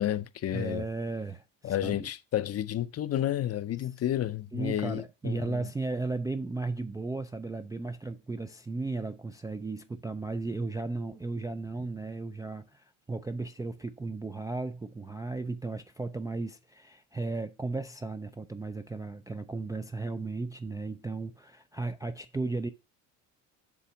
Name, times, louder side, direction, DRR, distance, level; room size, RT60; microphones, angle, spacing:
voice 1, 0.0-0.9 1.6-5.7, left 12 dB, 35° left, 0.6 m, -31 dB
voice 2, 0.5-2.1 4.5-22.7, right 3 dB, 10° right, 0.3 m, -35 dB
7.0 x 3.5 x 5.7 m
supercardioid pair, 75°, 41 cm